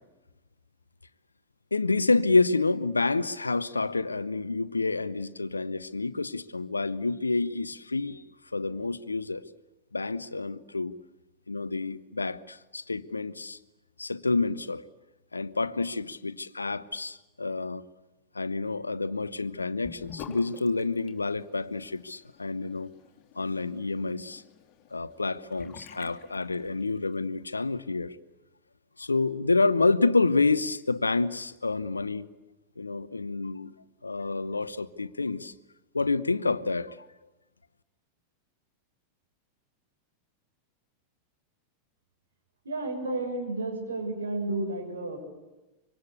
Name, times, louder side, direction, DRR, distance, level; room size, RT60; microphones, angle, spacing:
voice 1, 1.7-8.2 8.5-9.4 9.9-10.9 11.5-13.6 14.0-14.8 15.3-17.9 18.3-22.9 23.4-24.4 24.9-28.2 29.0-32.3 32.8-33.7 34.0-35.5 35.9-37.0, left 3 dB, 80° left, 0.8 m, -28 dB
Sink (filling or washing) / Bathtub (filling or washing), 19.8-27.1, left 9 dB, 40° left, 2.5 m, -49 dB
voice 2, 42.6-45.2, right 2 dB, 70° right, 6.9 m, -32 dB
26.0 x 24.5 x 8.4 m
figure-of-eight pair, 90°, 0 cm